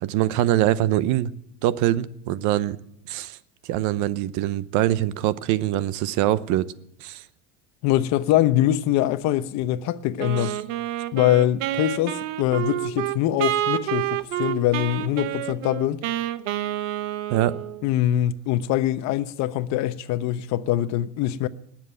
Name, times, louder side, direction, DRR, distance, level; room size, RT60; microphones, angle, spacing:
voice 1, 0.0-1.3 1.6-2.8 3.1-3.4 3.7-6.7 7.0-7.2 17.3-17.6, right 13 dB, 50° right, 0.9 m, -23 dB
voice 2, 7.8-10.5 11.1-16.0 17.8-21.5, left 13 dB, 50° left, 1.0 m, -23 dB
Wind instrument woodwind instrument, 10.2-17.9, right 13 dB, 75° right, 1.1 m, -28 dB
19.5 x 7.5 x 9.0 m
supercardioid pair, 140°, 36 cm